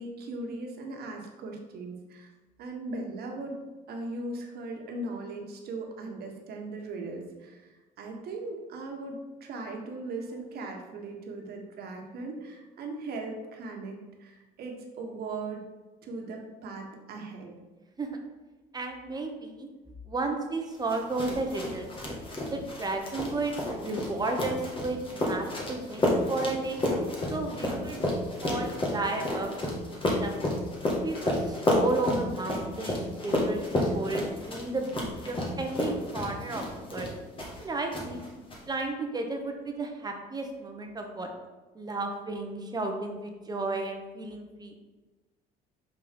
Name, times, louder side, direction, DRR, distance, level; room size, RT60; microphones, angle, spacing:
voice 1, 0.0-2.3 2.6-3.6 3.9-15.7 16.0-17.5 27.5-27.9, right 2 dB, 65° right, 1 dB, 1.4 m, -39 dB
voice 2, 18.7-19.7 20.0-21.9 22.5-23.6 23.8-26.8 27.3-28.0 28.4-29.5 29.9-30.4 31.0-37.1 37.6-38.3 38.7-41.3 41.7-44.8, right 2 dB, 25° right, 3 dB, 1.0 m, -33 dB
sound 1, 20.9-37.6 37.9-38.6, left 1 dB, 30° left, 1.7 m, -31 dB
5.8 x 4.4 x 5.1 m, 1.2 s
cardioid pair, 110°, 17 cm